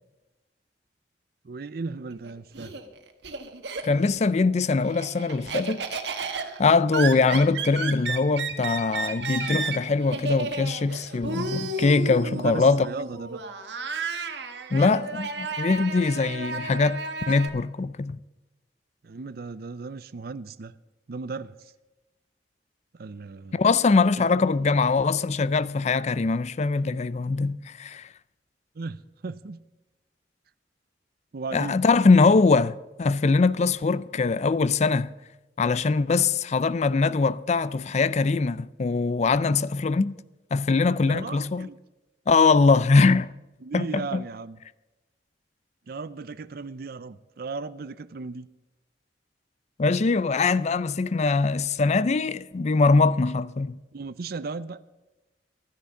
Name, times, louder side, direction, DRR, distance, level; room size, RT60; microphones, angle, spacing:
voice 1, 1.4-2.7 12.2-13.4 19.0-20.8 21.1-21.7 22.9-23.6 24.2-24.3 28.7-29.6 31.3-31.8 41.0-41.8 43.6-44.6 45.9-48.5 53.9-54.8, right 4 dB, 55° right, 0.5 m, -36 dB
Laughter, 2.1-4.2 4.6-17.5, right 4 dB, 75° right, 1.4 m, -33 dB
voice 2, 3.8-6.0 6.6-12.9 14.7-18.2 23.5-28.1 31.5-35.1 35.6-40.2 40.5-41.7 42.3-43.3 43.7-44.2 49.8-53.8, left 4 dB, 40° left, 0.4 m, -22 dB
13.0 x 10.0 x 7.2 m
head